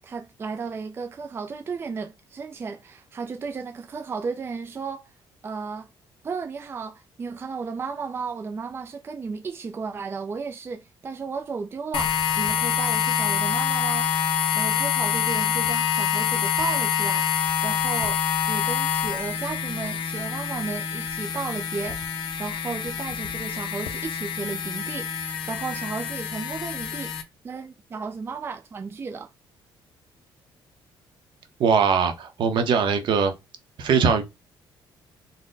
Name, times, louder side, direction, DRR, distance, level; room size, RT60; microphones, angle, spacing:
voice 1, 0.0-5.1 5.4-5.9 6.2-14.1 14.5-18.2 18.5-27.1 27.4-29.3, right 5 dB, 25° right, 0.4 m, -34 dB
sound 1, 11.9-27.2, left 8 dB, 70° left, 0.6 m, -26 dB
voice 2, 31.6-33.3 33.8-34.2, right 6 dB, 60° right, 0.8 m, -21 dB
4.0 x 2.1 x 3.8 m
cardioid pair, 135°, 9 cm